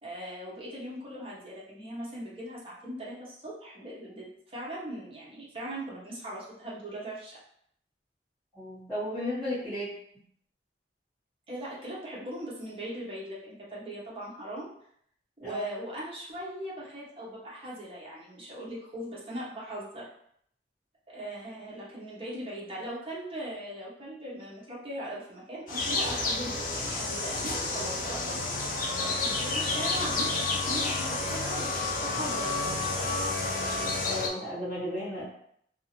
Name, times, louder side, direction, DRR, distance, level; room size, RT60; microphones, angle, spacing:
voice 1, 0.0-7.4 11.5-14.7 15.4-20.1 21.1-28.5 29.0-33.1, right 1 dB, 30° right, -6 dB, 0.8 m, -39 dB
voice 2, 8.5-9.9 15.4-15.6 34.1-35.2, left 1 dB, ahead, -19 dB, 1.5 m, -34 dB
sound 1, 25.7-34.3, left 3 dB, 50° left, 0.4 m, -30 dB
2.7 x 2.4 x 2.9 m, 0.68 s
head